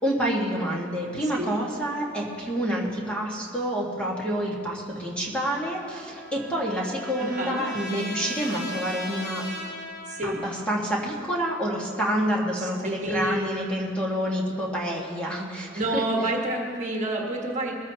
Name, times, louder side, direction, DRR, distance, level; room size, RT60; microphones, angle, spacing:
voice 1, 0.0-9.4 10.2-16.0, equal, 5° left, -4 dB, 1.7 m, -28 dB
Trumpet, 5.6-10.7, equal, 45° left, 2.8 m, -38 dB
voice 2, 7.2-7.6 10.1-10.4 12.6-13.5 15.5-17.7, right 1 dB, 35° right, -1 dB, 1.5 m, -29 dB
22.0 x 14.5 x 2.9 m, 2.2 s
head